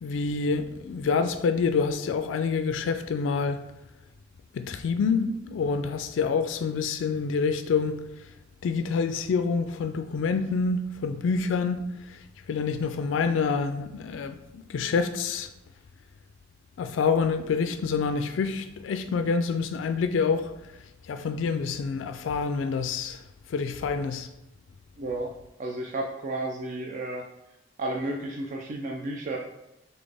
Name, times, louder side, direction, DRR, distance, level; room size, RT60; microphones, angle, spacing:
voice 1, 0.0-3.6 4.5-8.3 8.6-12.2 12.5-15.5 16.8-20.5 21.1-23.2 23.5-24.3, left 5 dB, 80° left, 0.3 m, -27 dB
voice 2, 25.0-25.3 25.6-27.2 27.8-29.4, right 2 dB, 45° right, 0.4 m, -32 dB
4.1 x 3.3 x 3.3 m
head